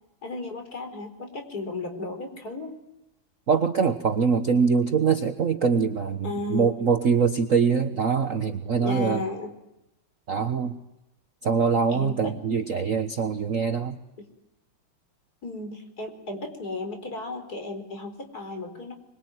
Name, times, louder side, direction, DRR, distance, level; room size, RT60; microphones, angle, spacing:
voice 1, 0.2-2.8 6.2-6.7 8.8-9.5 11.9-12.4 14.2-14.3 15.4-18.9, left 2 dB, 45° left, 5 dB, 5.0 m, -34 dB
voice 2, 3.5-9.2 10.3-10.8 11.4-14.0, right 6 dB, 45° right, 8 dB, 1.3 m, -23 dB
26.0 x 22.0 x 9.5 m, 0.90 s
omnidirectional pair, 2.4 m